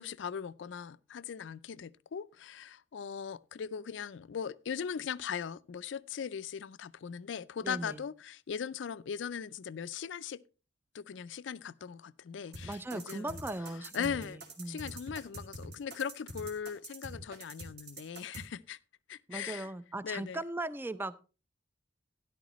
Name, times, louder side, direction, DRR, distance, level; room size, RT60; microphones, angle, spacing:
voice 1, 0.0-10.4 10.9-13.4 13.9-14.4 14.7-18.8 19.1-19.7 20.0-20.4, left 7 dB, 75° left, 0.4 m, -39 dB
voice 2, 7.6-8.0 12.6-14.9 19.3-21.3, right 2 dB, 10° right, 0.4 m, -39 dB
sound 1, 12.5-18.4, right 1 dB, 60° right, 2.5 m, -45 dB
12.5 x 11.0 x 3.0 m
head